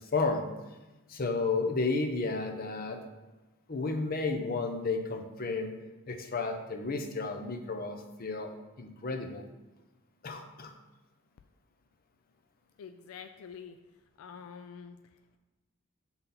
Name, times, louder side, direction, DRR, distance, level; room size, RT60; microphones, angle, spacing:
voice 1, 0.1-0.5 1.1-3.0 3.7-5.7 6.1-8.5 8.8-9.5 10.2-10.7, left 3 dB, 45° left, 5 dB, 0.7 m, -32 dB
voice 2, 12.8-13.8 14.2-15.0, left 7 dB, 75° left, 8 dB, 0.3 m, -46 dB
5.7 x 4.0 x 5.7 m, 1.1 s
head